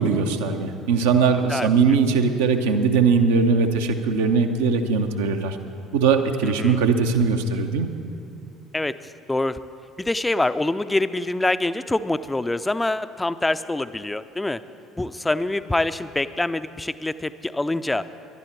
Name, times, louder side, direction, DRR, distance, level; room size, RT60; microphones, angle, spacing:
voice 1, 0.0-5.6 5.9-7.9, right 5 dB, 65° right, 6 dB, 0.8 m, -20 dB
voice 2, 1.5-2.0 6.4-6.8 8.7-9.6 10.0-14.6 15.0-18.1, left 2 dB, 10° left, 13 dB, 0.5 m, -25 dB
19.0 x 11.5 x 4.5 m, 2.6 s
figure-of-eight pair, 55°, 0 cm